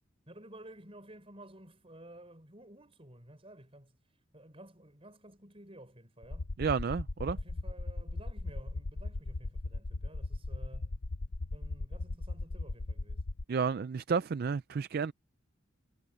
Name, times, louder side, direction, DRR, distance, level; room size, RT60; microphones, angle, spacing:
voice 1, 0.3-6.5 7.3-11.0 11.5-13.2, right 1 dB, 30° right, 6.0 m, -53 dB
sound 1, 6.2-13.4, left 2 dB, 80° left, 0.9 m, -37 dB
voice 2, 6.6-7.4 13.5-15.1, right 5 dB, 50° right, 0.4 m, -31 dB
head